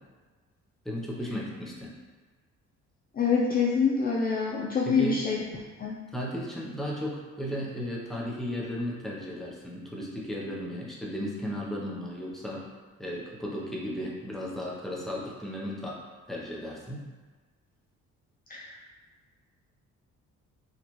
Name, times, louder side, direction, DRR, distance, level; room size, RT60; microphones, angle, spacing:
voice 1, 0.8-1.9 4.8-5.2 6.1-12.6 13.0-16.0 16.3-17.0, equal, ahead, -4 dB, 0.8 m, -35 dB
voice 2, 3.2-5.4 5.8-6.0 18.5-18.7, left 5 dB, 30° left, -4 dB, 0.5 m, -25 dB
4.3 x 2.4 x 3.1 m, 1.3 s
cardioid pair, 90°, 30 cm